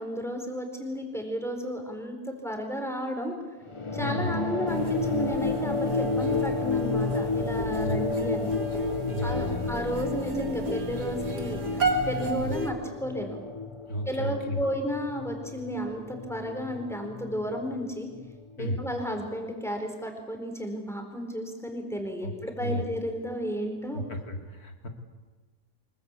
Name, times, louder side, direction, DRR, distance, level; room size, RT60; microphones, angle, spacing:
voice 1, 0.0-3.4 3.9-8.5 9.2-13.4 14.1-18.1 18.6-24.0, equal, ahead, 3 dB, 4.1 m, -33 dB
sound 1, 3.7-18.6, left 3 dB, 25° left, 0.8 m, -31 dB
voice 2, 4.0-4.3 7.8-8.1 9.1-9.7 12.4-12.5 13.9-14.6 18.6-18.8 22.2-22.3 22.6-22.8 23.9-24.9, left 1 dB, 65° left, 4 dB, 3.2 m, -33 dB
sound 2, 4.7-12.7, right 2 dB, 90° right, 3.6 m, -35 dB
25.0 x 21.5 x 8.4 m, 1.3 s
omnidirectional pair, 1.7 m